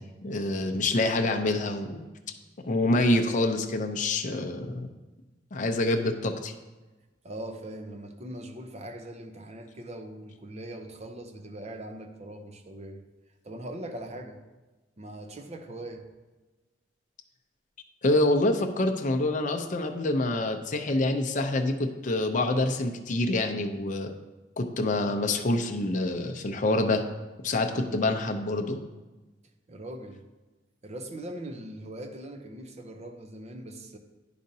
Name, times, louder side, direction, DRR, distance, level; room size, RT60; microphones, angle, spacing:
voice 1, 0.0-2.0 2.6-4.9 5.5-6.5 18.0-24.1 24.6-27.0 27.4-28.8, left 2 dB, 45° left, 5 dB, 0.6 m, -26 dB
voice 2, 7.2-13.0 13.4-14.4 15.0-16.0 29.7-30.2 30.8-34.0, right 1 dB, 35° right, 5 dB, 0.6 m, -41 dB
10.5 x 5.0 x 2.7 m, 1.2 s
head